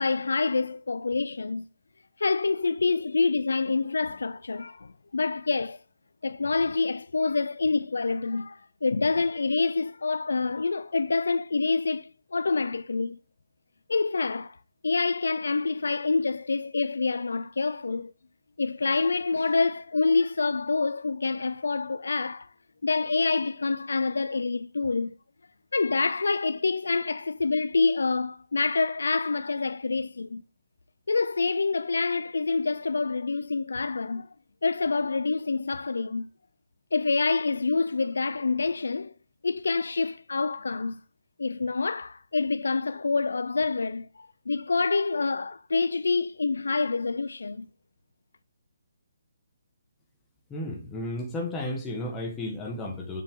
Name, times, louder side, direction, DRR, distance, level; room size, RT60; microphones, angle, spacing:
voice 1, 0.0-1.7 2.2-5.8 6.2-13.2 13.9-14.6 14.8-18.1 18.6-22.5 22.8-25.1 25.7-30.4 31.1-34.3 34.6-36.3 36.9-39.1 39.4-41.0 41.4-47.7, left 4 dB, 90° left, 0.4 m, -27 dB
voice 2, 50.5-53.2, left 1 dB, 10° left, 1.4 m, -33 dB
7.3 x 5.4 x 3.7 m
hypercardioid pair, 160°, 0 cm